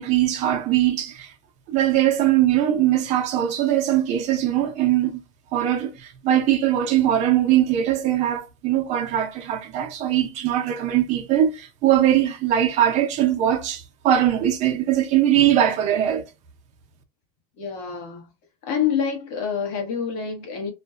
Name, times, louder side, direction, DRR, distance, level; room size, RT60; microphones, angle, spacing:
voice 1, 0.0-1.3 1.7-5.2 5.5-16.3, right 11 dB, 40° right, 0.5 m, -21 dB
voice 2, 17.6-18.3 18.6-20.7, left 7 dB, 75° left, 1.0 m, -27 dB
2.5 x 2.2 x 2.3 m
cardioid pair, 175°, 18 cm